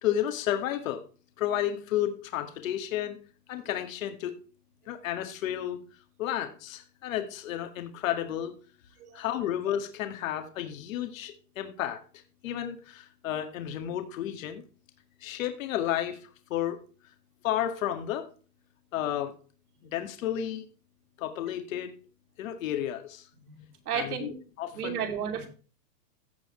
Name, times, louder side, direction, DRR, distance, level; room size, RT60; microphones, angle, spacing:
voice 1, 0.0-1.0 1.4-3.2 3.5-4.3 4.9-5.8 6.2-8.5 9.1-12.0 12.4-14.6 15.2-16.2 16.5-16.8 17.4-18.3 18.9-19.3 19.8-20.6 21.2-21.9 22.4-23.3 23.9-25.0, left 11 dB, 55° left, 6 dB, 2.0 m, -32 dB
voice 2, 23.5-24.4 24.7-25.5, right 7 dB, 65° right, 5 dB, 2.9 m, -33 dB
16.0 x 6.3 x 3.2 m, 0.37 s
hypercardioid pair, 145°, 48 cm